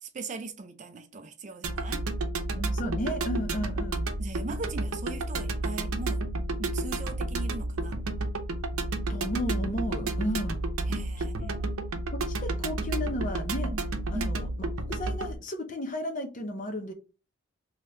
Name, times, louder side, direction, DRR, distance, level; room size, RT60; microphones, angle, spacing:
voice 1, 0.0-2.1 4.2-6.3 6.6-8.0 10.0-10.4 10.9-11.6 14.1-14.4, right 3 dB, 35° right, 0.4 m, -39 dB
sound 1, 1.6-15.4, right 2 dB, 80° right, 0.7 m, -31 dB
voice 2, 2.5-4.1 9.1-10.6 11.4-11.6 12.1-13.7 14.1-14.5 14.8-16.9, left 1 dB, 35° left, 0.6 m, -34 dB
3.4 x 2.8 x 2.7 m
head